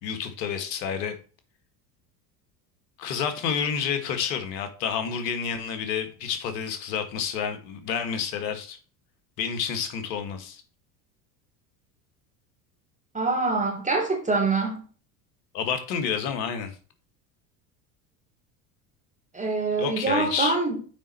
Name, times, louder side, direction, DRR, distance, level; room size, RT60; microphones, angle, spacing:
voice 1, 0.0-1.2 3.0-8.8 9.4-10.6 15.5-16.8 19.8-20.6, left 7 dB, 80° left, 1.8 m, -29 dB
voice 2, 13.1-14.8 19.3-20.8, right 3 dB, 15° right, 3.6 m, -25 dB
7.4 x 5.3 x 4.3 m
hypercardioid pair, 80°, 50 cm